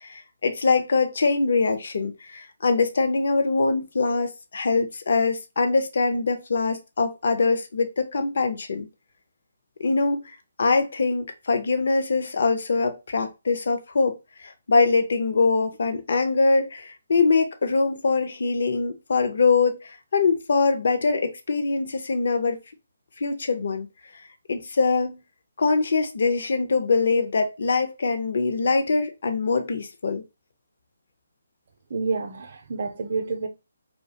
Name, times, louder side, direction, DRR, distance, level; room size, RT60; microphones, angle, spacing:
voice 1, 0.0-8.9 9.8-22.6 23.2-23.9 24.5-25.2 25.6-30.2, left 4 dB, 65° left, 0.5 m, -23 dB
voice 2, 31.9-33.5, right 4 dB, 55° right, 0.5 m, -28 dB
2.4 x 2.2 x 2.6 m
hypercardioid pair, 155°, 0 cm